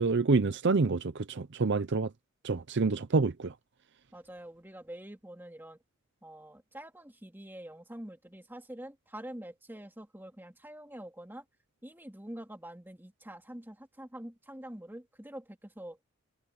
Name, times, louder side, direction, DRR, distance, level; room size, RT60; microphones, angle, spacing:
voice 1, 0.0-2.1 2.4-3.5, right 4 dB, 55° right, 0.6 m, -27 dB
voice 2, 4.1-5.8 6.2-11.4 11.8-16.0, right 1 dB, 10° right, 2.2 m, -46 dB
head